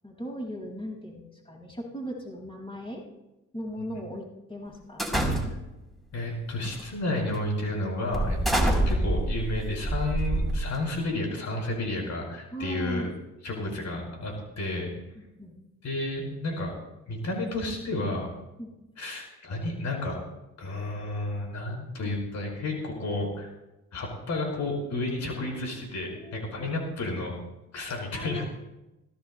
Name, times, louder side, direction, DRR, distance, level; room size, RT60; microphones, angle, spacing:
voice 1, 0.0-3.0 3.5-5.5 8.6-8.8 12.5-13.1 15.1-15.6 18.6-18.7 26.1-26.7 28.1-28.4, equal, 20° left, -4 dB, 6.6 m, -38 dB
sound 1, 5.0-5.8 6.6-6.9 7.3-7.5 8.1-11.0, right 1 dB, ahead, 4.1 m, -27 dB
voice 2, 6.1-13.1 13.4-14.9 15.8-16.8 17.1-18.3 19.0-20.2 20.6-23.5 23.9-27.4 27.7-28.4, left 2 dB, 65° left, 0 dB, 5.6 m, -31 dB
23.0 x 17.5 x 2.3 m, 0.95 s
cardioid pair, 90°, 30 cm